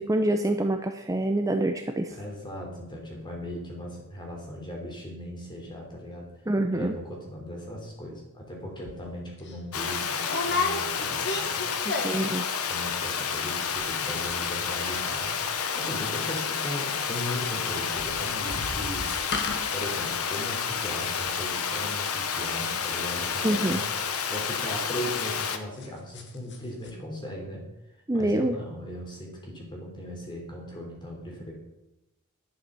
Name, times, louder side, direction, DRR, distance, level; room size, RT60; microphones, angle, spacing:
voice 1, 0.1-2.2 6.5-6.9 12.0-12.5 23.4-23.8 28.1-28.6, right 1 dB, 15° right, 5 dB, 0.6 m, -25 dB
voice 2, 2.1-6.3 6.7-11.7 12.6-15.3 15.7-19.1 19.7-27.6 28.1-31.6, equal, 20° left, -1 dB, 3.3 m, -38 dB
sound 1, 8.8-9.0 9.4-9.6 10.2-12.4 12.6-13.0 13.3-13.4 13.6-14.0 14.2-16.6 16.8-25.9 26.1-26.6 26.8-26.9, left 3 dB, 50° left, 1.7 m, -35 dB
Water, 9.7-25.6, left 6 dB, 80° left, 1.1 m, -30 dB
11.5 x 7.1 x 6.9 m, 0.91 s
head